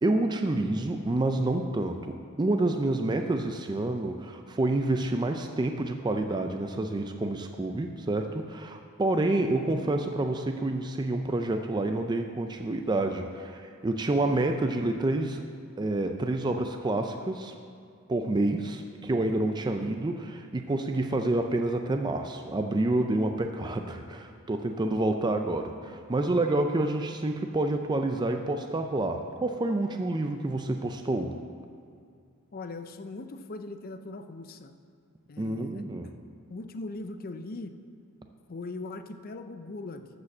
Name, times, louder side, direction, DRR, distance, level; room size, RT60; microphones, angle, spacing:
voice 1, 0.0-15.4 15.8-17.5 18.1-31.4 35.4-36.1, right 2 dB, 20° right, 4 dB, 0.4 m, -28 dB
voice 2, 32.5-34.7 35.3-35.8 36.5-37.7 38.5-40.1, left 2 dB, 40° left, 8 dB, 0.5 m, -40 dB
12.5 x 5.1 x 7.1 m, 2.3 s
head